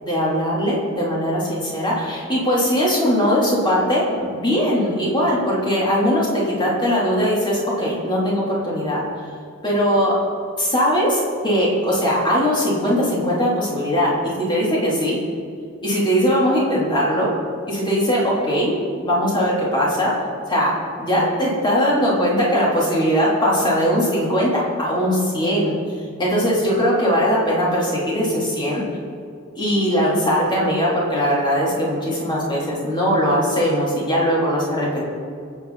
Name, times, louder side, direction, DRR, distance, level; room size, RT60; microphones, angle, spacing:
voice 1, 0.0-9.0 9.6-10.2 10.6-15.2 15.8-17.3 17.7-20.2 20.5-25.7 26.2-28.8 29.6-35.1, equal, 20° left, -5 dB, 3.6 m, -20 dB
23.5 x 8.5 x 4.2 m, 2.3 s
head